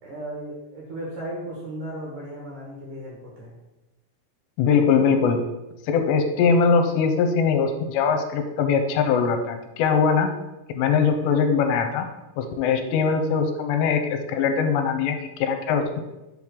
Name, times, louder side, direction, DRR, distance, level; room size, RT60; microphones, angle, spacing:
voice 1, 0.0-3.6, right 1 dB, 65° right, -3 dB, 2.2 m, -35 dB
voice 2, 4.6-5.4 5.9-10.3 10.7-12.1 12.4-16.0, left 5 dB, 85° left, 6 dB, 2.8 m, -21 dB
7.4 x 3.7 x 6.0 m, 1.0 s
omnidirectional pair, 5.1 m